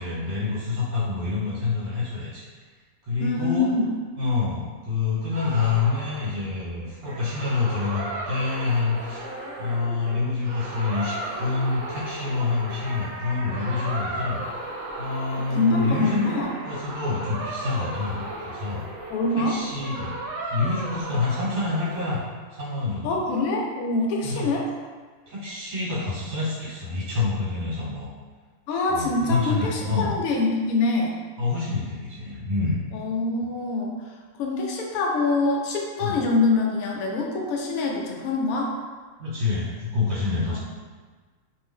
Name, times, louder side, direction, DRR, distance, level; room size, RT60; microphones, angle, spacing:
voice 1, 0.0-2.5 3.0-3.7 4.2-9.3 9.6-14.4 15.0-16.4 16.6-18.8 19.3-20.1 20.4-22.2 22.5-23.2 24.2-24.5 25.3-28.1 28.9-30.1 31.4-32.8 36.0-36.2 39.2-40.6, left 4 dB, 65° right, -10 dB, 1.4 m, -27 dB
voice 2, 3.2-4.0 15.3-16.5 19.1-19.6 23.0-24.7 28.7-31.1 32.9-33.9 34.4-38.7 40.5-40.6, left 3 dB, 80° left, -1 dB, 1.0 m, -25 dB
sound 1, 5.3-22.2, right 1 dB, 85° right, 1.1 m, -35 dB
2.6 x 2.6 x 3.5 m, 1.5 s
omnidirectional pair, 1.5 m